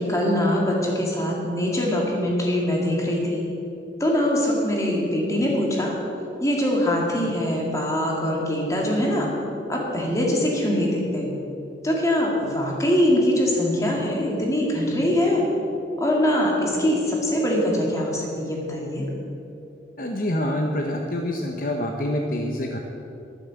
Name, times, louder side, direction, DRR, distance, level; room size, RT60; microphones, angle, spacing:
voice 1, 0.0-3.5 4.0-5.9 6.4-9.3 9.7-11.3 11.8-15.5 16.0-19.1, left 1 dB, 15° left, -2 dB, 2.3 m, -23 dB
voice 2, 20.0-22.8, left 1 dB, 50° left, 2 dB, 0.9 m, -26 dB
11.0 x 11.0 x 7.1 m, 2.9 s
head